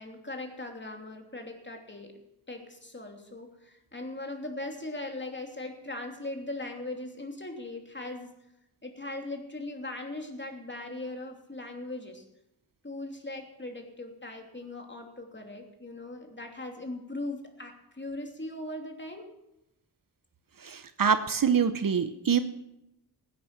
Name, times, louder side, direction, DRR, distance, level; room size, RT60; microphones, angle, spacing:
voice 1, 0.0-2.2 2.5-8.3 8.8-12.2 12.8-19.3, left 2 dB, 25° left, 3 dB, 3.0 m, -39 dB
voice 2, 20.6-22.4, right 7 dB, 50° right, 11 dB, 0.9 m, -25 dB
16.0 x 9.5 x 6.1 m, 0.87 s
cardioid pair, 50°, 42 cm